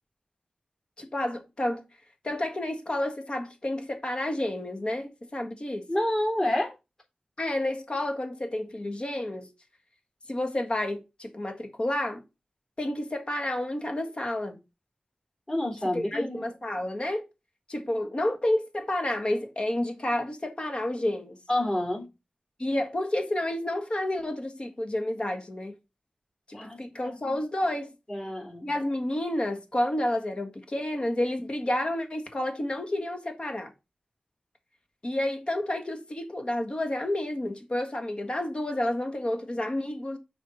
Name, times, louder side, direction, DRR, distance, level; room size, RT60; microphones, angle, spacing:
voice 1, 1.0-1.8 2.2-5.9 7.4-9.5 10.3-12.2 12.8-14.6 15.9-17.2 17.7-21.4 22.6-25.8 26.5-27.9 28.6-33.7 35.0-40.2, left 1 dB, 40° left, 1.6 m, -30 dB
voice 2, 5.9-6.7 15.5-16.5 21.5-22.0 26.5-26.8 27.0-27.4 28.1-28.7, left 1 dB, 20° left, 3.3 m, -29 dB
6.3 x 4.7 x 5.5 m
wide cardioid pair, 95°, 3 cm